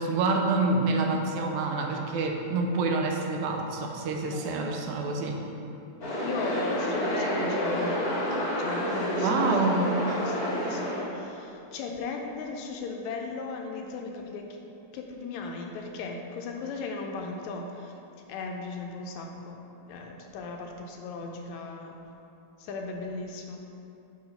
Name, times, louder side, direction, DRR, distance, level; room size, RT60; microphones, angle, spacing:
voice 1, 0.0-5.4 9.2-10.3 10.7-10.8, right 3 dB, 80° right, 2 dB, 2.1 m, -27 dB
voice 2, 4.2-4.8 6.2-8.1 8.6-14.6 14.9-17.9 18.3-22.0 22.6-23.6, left 3 dB, 80° left, 2 dB, 1.8 m, -37 dB
sound 1, 6.0-11.0, equal, 55° left, 1.0 m, -29 dB
8.7 x 3.2 x 5.5 m, 2.7 s
omnidirectional pair, 3.4 m